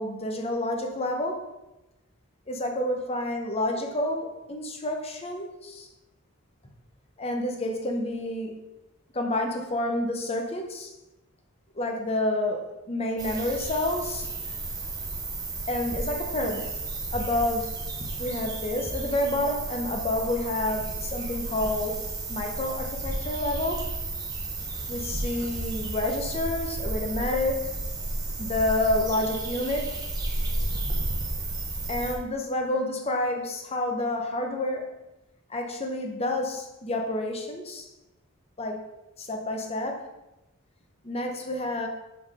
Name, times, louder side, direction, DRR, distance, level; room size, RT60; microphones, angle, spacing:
voice 1, 0.0-1.4 2.5-5.9 7.2-8.6 9.1-10.9 11.8-14.3 15.7-16.7 17.1-17.7 18.2-22.0 22.3-23.9 24.9-27.7 28.4-29.9 31.9-34.9 35.5-37.9 38.6-38.9 39.2-40.1 41.0-41.9, left 1 dB, 30° left, 3 dB, 0.8 m, -29 dB
sound 1, 13.2-32.1, right 2 dB, 20° right, 1.0 m, -33 dB
5.7 x 4.4 x 4.8 m, 0.98 s
head